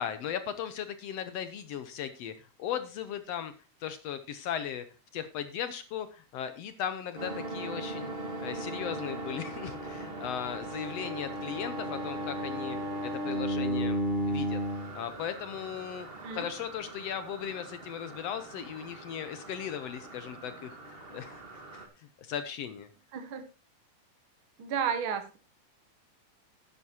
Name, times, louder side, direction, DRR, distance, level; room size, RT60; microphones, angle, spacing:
voice 1, 0.0-3.5 3.8-4.8 5.1-8.1 8.4-14.0 14.3-14.6 14.9-21.4 21.7-22.9, left 9 dB, 75° left, 10 dB, 1.5 m, -37 dB
sound 1, 7.2-21.9, equal, 30° right, 1.1 m, -36 dB
voice 2, 23.1-23.4 24.6-25.4, right 7 dB, 60° right, 7 dB, 1.4 m, -32 dB
12.0 x 11.0 x 2.8 m, 0.31 s
omnidirectional pair, 3.8 m